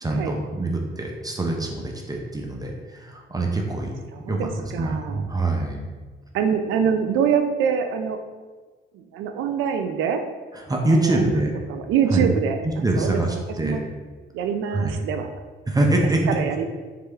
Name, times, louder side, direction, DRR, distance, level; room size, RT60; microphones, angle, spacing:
voice 1, 0.0-3.9 4.3-5.9 10.5-11.5 12.1-12.3 12.6-13.8 14.7-15.0 15.7-16.3, right 2 dB, 20° right, 1 dB, 0.5 m, -24 dB
voice 2, 4.1-5.3 6.3-8.2 8.9-10.2 10.9-11.4 11.7-12.6 13.0-13.2 13.6-13.9 14.3-15.3 16.3-16.7, right 7 dB, 85° right, 6 dB, 0.4 m, -24 dB
3.4 x 3.2 x 3.4 m, 1.4 s
cardioid pair, 90°, 20 cm